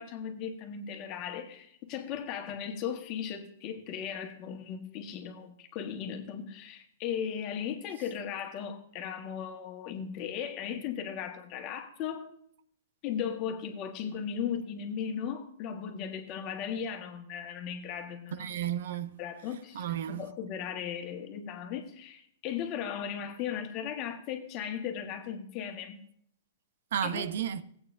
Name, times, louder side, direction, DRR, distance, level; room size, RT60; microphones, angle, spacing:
voice 1, 0.0-12.3 13.0-18.4 19.2-26.0 27.0-27.3, left 8 dB, 35° left, 1.5 m, -37 dB
voice 2, 18.3-19.2 19.7-20.3 26.9-27.6, right 9 dB, 65° right, 0.7 m, -33 dB
16.5 x 8.6 x 2.6 m
hypercardioid pair, 150°, 0 cm